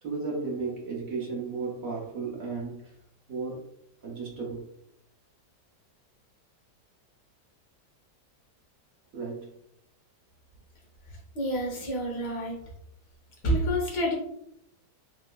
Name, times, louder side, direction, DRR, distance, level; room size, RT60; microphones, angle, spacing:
voice 1, 0.0-2.9 3.3-3.7 4.0-4.7 9.1-9.5, right 4 dB, 60° right, -2 dB, 1.0 m, -34 dB
voice 2, 11.3-12.6 13.4-14.1, equal, 75° left, -1 dB, 1.6 m, -28 dB
3.7 x 2.8 x 2.2 m, 0.76 s
omnidirectional pair, 1.9 m